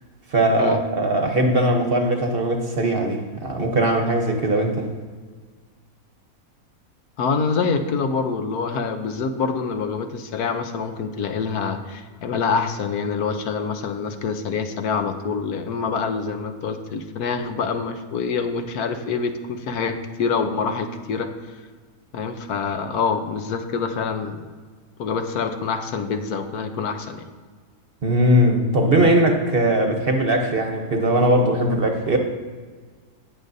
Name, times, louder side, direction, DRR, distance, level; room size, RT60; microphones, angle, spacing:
voice 1, 0.3-4.9 28.0-32.2, right 1 dB, 45° right, 3 dB, 1.0 m, -20 dB
voice 2, 7.2-21.6 22.1-24.4 25.0-27.2, left 5 dB, 85° left, 7 dB, 1.3 m, -26 dB
17.5 x 6.5 x 2.7 m, 1.5 s
omnidirectional pair, 1.6 m